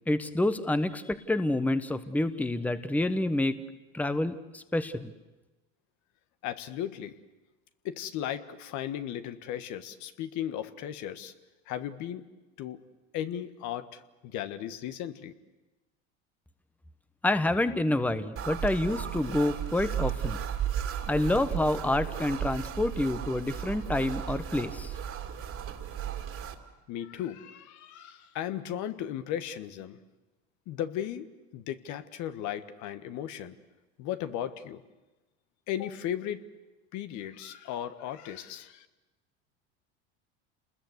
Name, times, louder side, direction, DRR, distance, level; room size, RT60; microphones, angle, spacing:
voice 1, 0.1-3.6 3.9-5.1 17.2-20.4 21.1-24.9, left 1 dB, 5° left, 12 dB, 1.2 m, -28 dB
voice 2, 6.4-7.1 7.8-11.3 11.7-12.3 12.6-12.8 13.1-15.3 26.9-30.0 30.7-31.3 31.5-33.5 34.0-34.8 35.7-36.4 36.9-38.9, left 11 dB, 60° left, 11 dB, 1.6 m, -36 dB
sound 1, 18.4-26.6, right 9 dB, 45° right, 2.7 m, -35 dB
28.5 x 20.5 x 8.2 m, 1.1 s
supercardioid pair, 100°, 34 cm